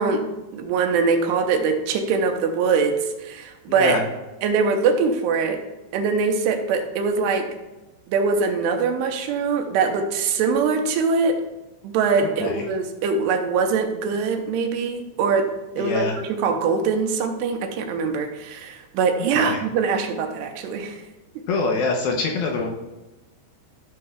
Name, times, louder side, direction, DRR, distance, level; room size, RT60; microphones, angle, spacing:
voice 1, 0.0-4.0 4.4-5.6 5.9-7.5 8.1-11.4 11.8-21.0, right 5 dB, 85° right, 4 dB, 2.8 m, -23 dB
voice 2, 3.7-4.0 12.4-12.6 15.8-16.2 19.4-19.6 21.5-22.7, left 3 dB, 75° left, 1 dB, 2.4 m, -24 dB
13.5 x 6.5 x 2.3 m, 1.1 s
omnidirectional pair, 4.8 m